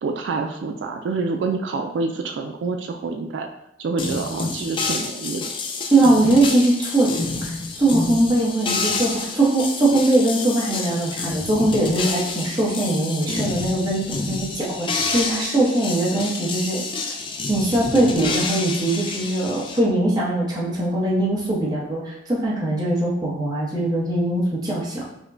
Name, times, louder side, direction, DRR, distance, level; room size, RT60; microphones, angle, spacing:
voice 1, 0.0-3.5 3.8-5.5, right 4 dB, 85° right, 4 dB, 0.3 m, -27 dB
sound 1, 4.0-19.8, left 3 dB, 30° left, 0.3 m, -29 dB
voice 2, 5.9-7.1 7.4-16.8 17.5-25.0, right 2 dB, 25° right, -5 dB, 0.9 m, -21 dB
4.9 x 2.1 x 2.6 m, 0.80 s
head